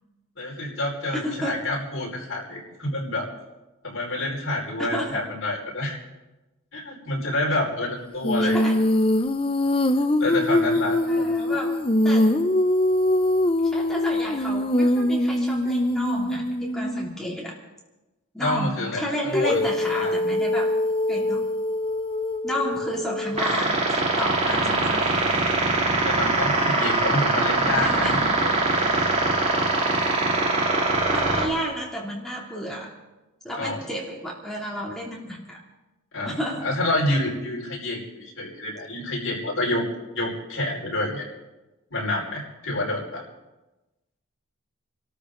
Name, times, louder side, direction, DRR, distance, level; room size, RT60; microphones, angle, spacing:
voice 1, 0.4-3.3 3.8-6.0 6.7-8.6 10.2-11.6 18.4-19.6 19.9-20.1 24.5-25.1 26.0-28.8 33.6-33.8 36.1-39.9 40.1-41.2 41.9-43.2, left 1 dB, 55° left, -3 dB, 5.1 m, -28 dB
voice 2, 1.1-1.7 4.8-5.3 8.4-8.8 11.0-11.8 12.0-12.4 13.6-17.5 18.3-20.7 21.1-21.5 22.4-25.5 27.7-28.3 31.1-32.9 33.4-35.6 36.3-36.7, equal, ahead, -3 dB, 2.8 m, -32 dB
Female singing, 8.2-17.1 19.3-23.5, left 1 dB, 25° left, 0.7 m, -23 dB
sound 1, 23.4-31.4, right 2 dB, 30° right, 2.5 m, -22 dB
26.5 x 13.5 x 3.9 m, 1.1 s
head